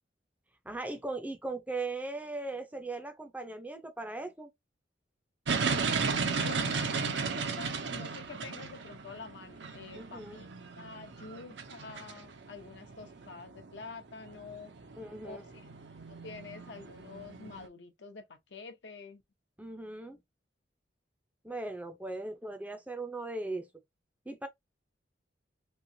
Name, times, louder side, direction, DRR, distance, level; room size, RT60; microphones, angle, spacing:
voice 1, 0.6-4.5 9.9-10.4 15.0-15.4 19.6-20.2 21.4-23.7 24.3-24.5, right 2 dB, 10° right, 0.5 m, -38 dB
sound 1, 5.5-17.7, right 5 dB, 70° right, 0.6 m, -35 dB
voice 2, 6.4-10.5 10.8-14.7 15.2-15.5 16.1-19.2, left 4 dB, 70° left, 0.8 m, -47 dB
3.2 x 2.8 x 2.6 m
head